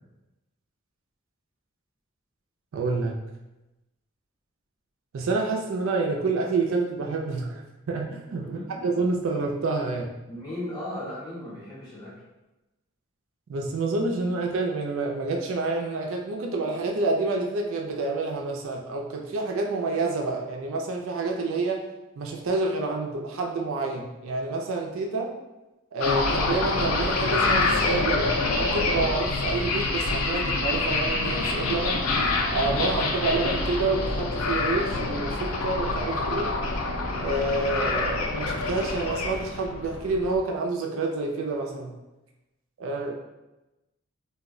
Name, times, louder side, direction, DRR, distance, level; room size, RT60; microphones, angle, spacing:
voice 1, 2.7-3.2 5.1-7.6 7.9-10.2 13.5-21.8 22.2-25.3 25.9-32.1 32.5-36.5 37.2-41.9 42.8-43.1, right 3 dB, 75° right, 1 dB, 0.4 m, -28 dB
voice 2, 8.4-8.8 10.3-12.1, left 1 dB, 20° left, -10 dB, 1.0 m, -36 dB
sound 1, 26.0-40.4, left 3 dB, 85° left, 0.4 m, -26 dB
2.2 x 2.1 x 3.6 m, 1.0 s
head